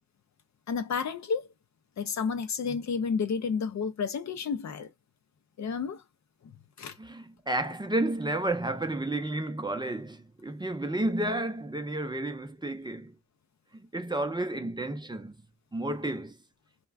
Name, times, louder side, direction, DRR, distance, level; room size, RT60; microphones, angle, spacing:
voice 1, 0.7-1.5 2.0-4.9 5.6-6.0 6.4-6.5 6.8-7.0, left 5 dB, 70° left, 0.5 m, -31 dB
voice 2, 7.0-13.2 13.9-15.4 15.7-16.4, right 1 dB, 15° right, 0.4 m, -31 dB
2.3 x 2.1 x 3.3 m
wide cardioid pair, 110°, 29 cm